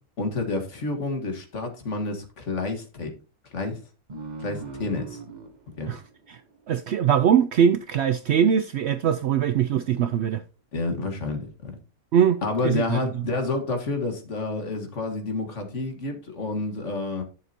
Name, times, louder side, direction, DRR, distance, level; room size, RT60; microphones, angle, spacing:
voice 1, 0.2-3.1 3.5-3.8 4.4-5.2 5.8-5.9 10.7-11.8 12.4-17.2, left 3 dB, 55° left, 1.9 m, -29 dB
sound 1, 4.1-7.3, right 3 dB, 35° right, 0.9 m, -40 dB
voice 2, 6.7-10.4 12.1-13.0, right 8 dB, 65° right, 0.7 m, -22 dB
11.0 x 6.6 x 2.8 m
omnidirectional pair, 1.5 m